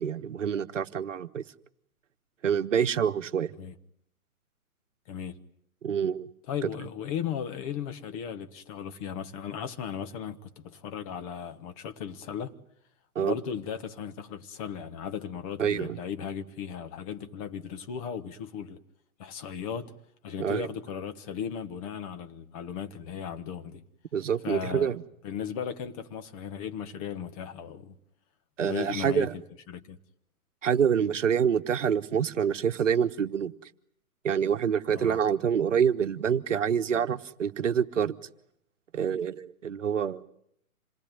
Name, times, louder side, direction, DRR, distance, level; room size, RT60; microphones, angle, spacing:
voice 1, 0.0-1.4 2.4-3.5 5.8-6.3 6.6-6.7 13.1-13.3 15.6-16.0 20.4-20.7 24.1-25.0 28.6-29.3 30.6-33.7 34.2-38.2 38.9-40.2, right 7 dB, 55° right, 1.3 m, -26 dB
voice 2, 5.1-5.4 6.5-12.5 13.2-18.8 19.2-19.9 20.2-23.8 24.4-25.0 25.2-28.0 28.6-30.0 35.0-35.2, left 8 dB, 25° left, 1.2 m, -36 dB
27.5 x 19.5 x 9.4 m
figure-of-eight pair, 130°, 44 cm